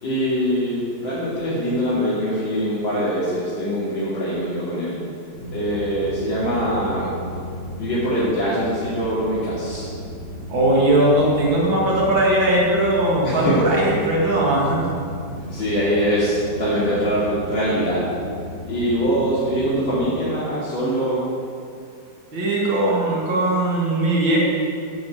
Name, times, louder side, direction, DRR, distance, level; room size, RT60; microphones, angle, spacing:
voice 1, 0.0-5.0 5.5-7.1 7.8-9.9 13.2-13.6 15.5-18.1 18.7-21.3, equal, 80° left, -11 dB, 3.8 m, -23 dB
sound 1, 5.3-20.1, equal, 40° right, 2.2 m, -35 dB
voice 2, 10.5-14.9 22.3-24.4, right 1 dB, 85° right, -4 dB, 2.8 m, -19 dB
11.0 x 8.9 x 7.9 m, 2.4 s
omnidirectional pair, 2.0 m